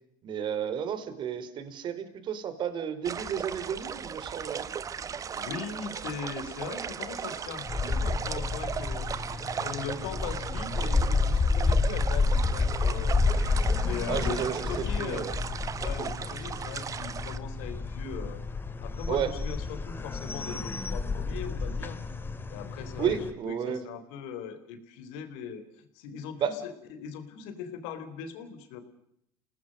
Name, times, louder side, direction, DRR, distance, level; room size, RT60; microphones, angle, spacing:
voice 1, 0.2-4.7 14.1-15.3 19.1-19.3 23.0-23.8 26.4-26.5, right 8 dB, 45° right, 12 dB, 3.4 m, -32 dB
sound 1, 3.0-17.4, right 7 dB, 30° right, 1.3 m, -37 dB
voice 2, 5.4-9.1 9.6-13.2 13.8-15.3 15.8-18.4 18.8-22.0 22.5-23.2 23.5-28.8, left 7 dB, 80° left, 10 dB, 3.9 m, -40 dB
sound 2, 7.7-23.3, left 3 dB, 20° left, 2.2 m, -30 dB
30.0 x 19.0 x 6.4 m, 0.74 s
supercardioid pair, 110°, 11 cm